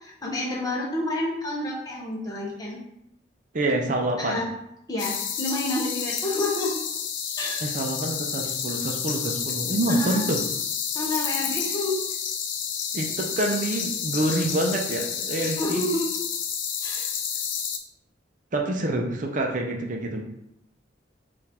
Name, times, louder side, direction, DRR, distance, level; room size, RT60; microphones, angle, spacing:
voice 1, 0.0-2.8 4.2-4.5 4.9-6.8 7.4-7.6 10.0-10.2 10.9-12.0 15.4-16.1 16.8-17.1, left 1 dB, 20° left, -3 dB, 0.9 m, -29 dB
voice 2, 3.5-4.4 7.6-10.4 12.9-15.8 18.5-20.2, right 1 dB, 45° right, 2 dB, 0.6 m, -26 dB
sound 1, 5.0-17.8, left 7 dB, 90° left, 0.5 m, -30 dB
3.9 x 2.5 x 4.2 m, 0.80 s
head